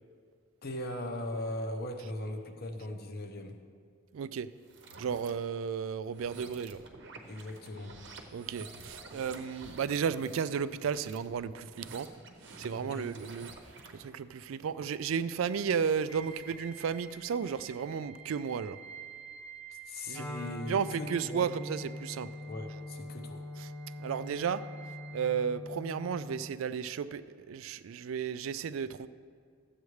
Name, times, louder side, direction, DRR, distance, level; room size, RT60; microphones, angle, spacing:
voice 1, 0.6-3.6 7.3-8.0 12.8-13.1 19.7-21.5 22.4-23.4, left 1 dB, 50° left, 5 dB, 0.8 m, -39 dB
voice 2, 4.1-4.5 5.0-6.8 8.3-12.1 12.6-18.8 20.1-20.2 20.7-22.3 23.6-23.7 24.0-24.7 25.1-29.1, right 7 dB, 80° right, 15 dB, 0.3 m, -33 dB
sound 1, 4.6-5.3 6.0-14.1, right 3 dB, 60° right, 0.9 m, -50 dB
sound 2, 16.1-25.2, right 6 dB, 75° left, 1.1 m, -51 dB
Wind instrument woodwind instrument, 20.1-26.5, left 2 dB, 10° left, 0.5 m, -43 dB
14.0 x 8.1 x 3.2 m, 2.1 s
head